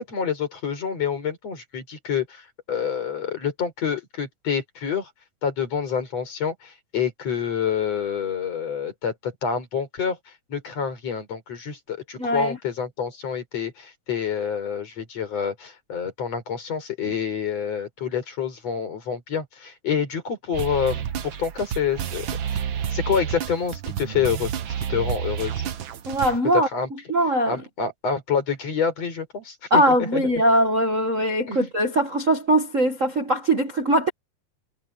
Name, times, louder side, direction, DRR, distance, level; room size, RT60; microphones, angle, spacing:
voice 1, 0.0-5.1 5.4-10.2 10.5-22.6 22.9-24.5 24.8-25.6 26.5-26.9 27.5-30.3 31.5-31.7, left 7 dB, 50° left, 5.9 m, -27 dB
voice 2, 12.2-12.6 26.0-26.7 27.1-27.6 29.7-34.1, right 1 dB, 35° right, 1.4 m, -21 dB
sound 1, 20.5-26.4, right 9 dB, 70° right, 1.1 m, -30 dB
omnidirectional pair, 3.7 m